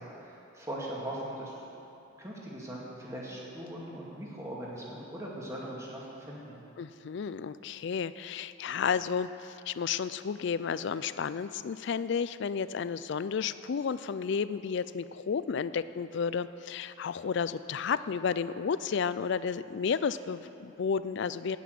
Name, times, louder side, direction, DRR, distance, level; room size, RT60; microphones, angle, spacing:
voice 1, 0.0-1.8 2.2-6.6, right 1 dB, 15° right, -5 dB, 2.1 m, -40 dB
voice 2, 6.8-21.6, left 6 dB, 55° left, 14 dB, 0.3 m, -32 dB
9.1 x 8.5 x 9.4 m, 2.9 s
head